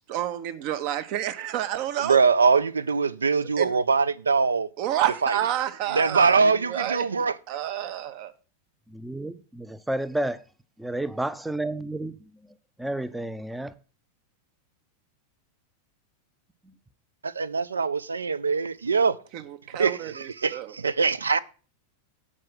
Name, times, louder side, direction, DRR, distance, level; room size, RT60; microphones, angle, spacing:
voice 1, 0.1-2.3 3.6-3.7 4.8-8.3 19.3-20.8, right 11 dB, 45° right, 0.7 m, -30 dB
voice 2, 2.0-4.7 5.2-5.3 6.0-7.3 17.2-19.1 19.8-21.4, right 5 dB, 75° right, 0.3 m, -23 dB
voice 3, 8.9-10.4 10.8-12.3 12.8-13.7, right 1 dB, 5° right, 0.5 m, -31 dB
7.5 x 4.8 x 5.6 m
figure-of-eight pair, 90°, 0 cm